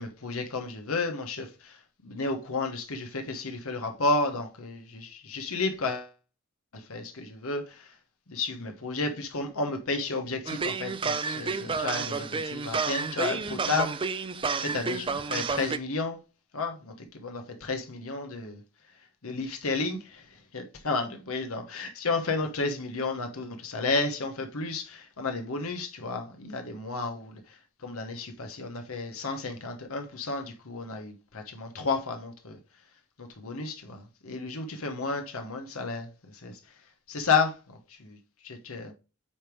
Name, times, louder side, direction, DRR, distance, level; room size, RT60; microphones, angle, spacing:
voice 1, 0.0-1.8 2.0-6.1 6.7-7.9 8.3-13.9 14.6-16.2 16.5-18.6 19.2-20.2 20.5-27.6 27.8-32.6 33.2-36.6 37.1-38.2 38.4-38.9, left 3 dB, 70° left, 1.1 m, -32 dB
sound 1, 10.5-15.8, right 4 dB, 25° right, 0.4 m, -30 dB
8.6 x 3.5 x 4.6 m
head